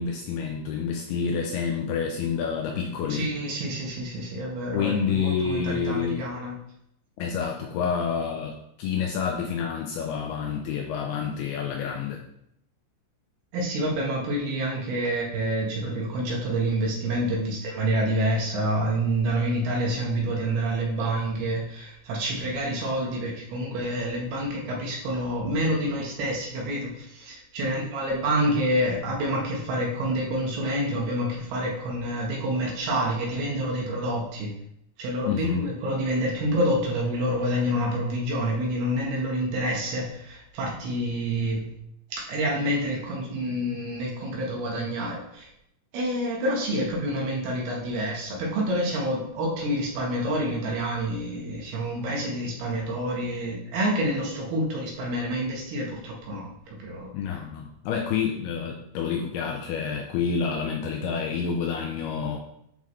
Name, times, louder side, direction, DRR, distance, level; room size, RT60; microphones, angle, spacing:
voice 1, 0.0-3.3 4.7-6.3 7.2-12.2 27.6-27.7 35.3-35.7 57.1-62.4, left 6 dB, 90° left, 2 dB, 2.2 m, -28 dB
voice 2, 3.1-6.6 13.5-34.5 35.0-41.7 42.1-45.5 45.9-56.5 56.8-57.1, right 1 dB, 70° right, -2 dB, 2.9 m, -28 dB
10.5 x 3.8 x 3.2 m, 0.76 s
omnidirectional pair, 5.2 m